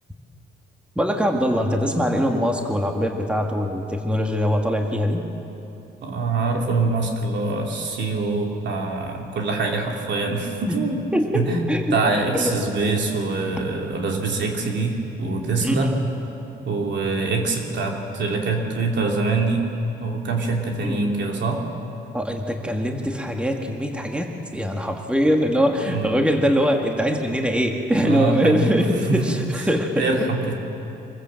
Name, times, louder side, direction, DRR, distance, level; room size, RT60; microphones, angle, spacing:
voice 1, 1.0-5.2 10.7-10.8 11.1-12.0 12.3-12.5 15.6-16.0 20.8-21.1 22.1-30.1, equal, 5° right, 2 dB, 1.9 m, -22 dB
voice 2, 6.0-11.1 11.3-11.6 11.9-15.9 16.7-19.7 20.0-21.6 25.9-26.1 28.0-28.8 29.1-29.2 29.9-30.5, right 3 dB, 65° right, 1 dB, 3.1 m, -24 dB
25.5 x 15.0 x 7.8 m, 2.8 s
cardioid pair, 90°, 20 cm